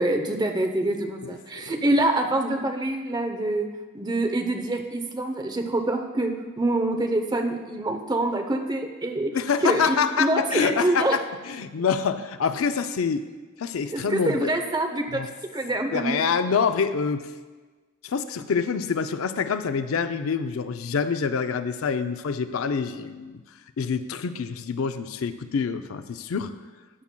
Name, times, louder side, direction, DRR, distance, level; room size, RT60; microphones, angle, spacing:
voice 1, 0.0-3.7 3.9-9.3 9.6-11.2 13.9-15.2 15.5-16.2, right 1 dB, 20° right, 4 dB, 0.7 m, -25 dB
voice 2, 9.3-13.3 13.6-14.5 15.1-15.3 15.9-17.3 18.0-23.4 23.8-26.5, left 6 dB, 90° left, 10 dB, 0.5 m, -26 dB
14.0 x 8.4 x 2.2 m, 1.3 s
head